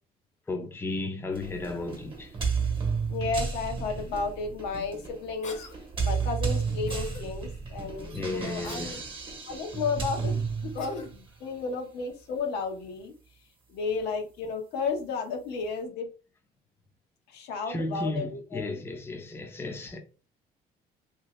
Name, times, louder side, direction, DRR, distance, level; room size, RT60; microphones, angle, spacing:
voice 1, 0.5-2.3 8.1-9.1 17.7-20.0, left 2 dB, 15° left, 0.5 m, -34 dB
sound 1, 1.3-11.2, right 5 dB, 30° right, 0.9 m, -32 dB
voice 2, 3.1-5.6 6.0-9.0 9.5-13.1 13.7-16.1 17.3-18.8, left 4 dB, 80° left, 0.9 m, -33 dB
Cough, 5.4-5.8 6.9-7.2 8.6-9.0 10.8-11.1, left 5 dB, 45° left, 0.9 m, -44 dB
2.7 x 2.7 x 3.1 m
cardioid pair, 110°, 17 cm